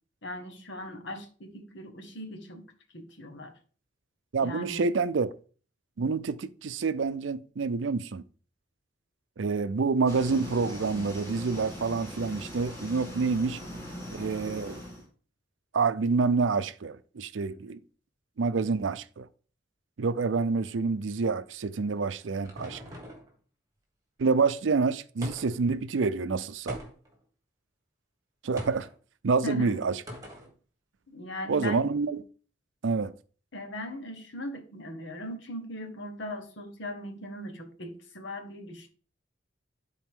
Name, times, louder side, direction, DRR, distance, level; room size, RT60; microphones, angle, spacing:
voice 1, 0.2-2.7 2.9-3.5 4.4-4.9 29.4-29.8 31.1-31.9 33.5-38.9, left 1 dB, 70° left, 1.5 m, -39 dB
voice 2, 4.3-5.3 6.0-8.2 9.4-13.6 14.1-14.8 15.7-17.8 18.4-19.3 20.0-22.8 24.2-26.8 28.4-28.9 29.2-30.0 31.5-32.2 32.8-33.1, right 4 dB, 85° right, 0.5 m, -27 dB
sound 1, 10.1-15.0, equal, 15° left, 2.7 m, -41 dB
sound 2, 21.8-23.3 25.2-25.7 26.7-27.2 28.6-28.9 30.1-30.5, equal, 20° right, 1.9 m, -41 dB
12.0 x 4.2 x 3.7 m
head